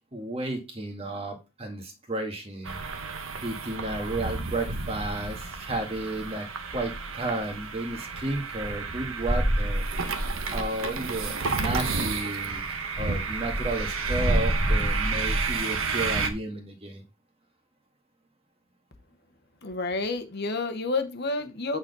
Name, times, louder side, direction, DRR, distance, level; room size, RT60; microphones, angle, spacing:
voice 1, 0.1-2.8 3.4-6.5 6.7-9.9 10.5-12.6 13.0-17.0, right 2 dB, 25° right, 3 dB, 1.7 m, -33 dB
sound 1, 2.6-16.3, right 4 dB, 75° right, 1.2 m, -31 dB
sound 2, 9.2-10.9 11.2-11.3 11.5-12.0 12.5-15.6, equal, 5° right, 1.3 m, -28 dB
voice 2, 19.6-21.8, left 3 dB, 50° left, 8 dB, 1.1 m, -29 dB
8.7 x 4.1 x 5.4 m, 0.27 s
head